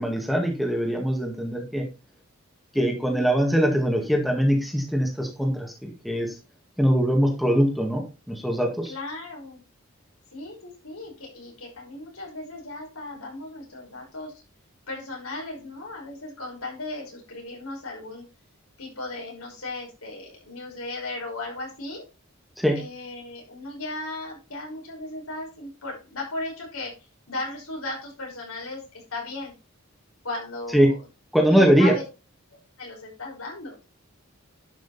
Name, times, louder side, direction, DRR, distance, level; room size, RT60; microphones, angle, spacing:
voice 1, 0.0-1.8 2.7-6.3 6.8-8.9 22.6-22.8 30.7-30.9 31.3-31.9, equal, ahead, 0 dB, 2.0 m, -22 dB
voice 2, 2.7-3.3 8.8-9.6 10.3-14.4 14.9-18.2 18.8-22.0 22.8-26.9 27.3-28.8 29.1-29.5 30.2-31.0 31.5-32.1 32.5-33.8, left 2 dB, 85° left, -1 dB, 5.7 m, -36 dB
11.0 x 6.1 x 4.2 m, 0.29 s
head